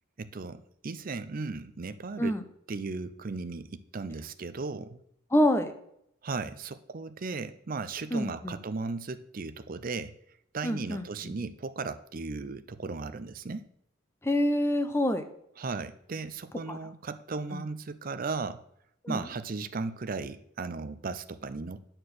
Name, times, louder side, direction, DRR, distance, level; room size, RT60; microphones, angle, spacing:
voice 1, 0.2-2.4 2.7-5.0 6.2-10.1 10.5-13.6 15.6-18.6 19.1-21.8, right 4 dB, 45° right, 12 dB, 0.5 m, -36 dB
voice 2, 5.3-5.7 8.1-8.6 10.6-11.3 14.2-15.3 16.7-16.8 17.5-17.6 19.0-19.2, left 1 dB, 15° left, 8 dB, 0.7 m, -27 dB
9.4 x 4.5 x 6.5 m, 0.73 s
head